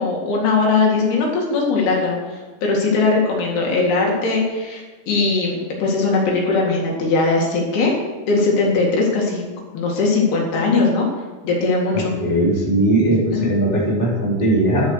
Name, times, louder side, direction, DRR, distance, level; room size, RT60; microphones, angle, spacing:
voice 1, 0.0-8.0 8.3-9.4 9.7-11.1 11.4-12.1 13.3-13.4, left 3 dB, 75° left, -1 dB, 4.0 m, -19 dB
voice 2, 11.9-14.9, right 1 dB, 15° left, -5 dB, 3.6 m, -19 dB
11.5 x 8.7 x 6.3 m, 1.3 s
omnidirectional pair, 4.5 m